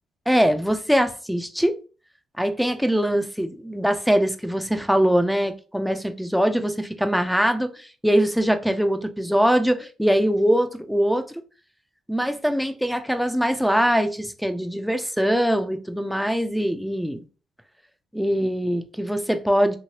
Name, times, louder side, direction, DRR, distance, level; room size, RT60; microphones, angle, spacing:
voice 1, 0.3-1.8 2.4-7.7 8.0-11.3 12.1-17.2 18.1-19.8, equal, ahead, 0.5 m, -22 dB
3.1 x 2.8 x 2.8 m
cardioid pair, 90°, 0 cm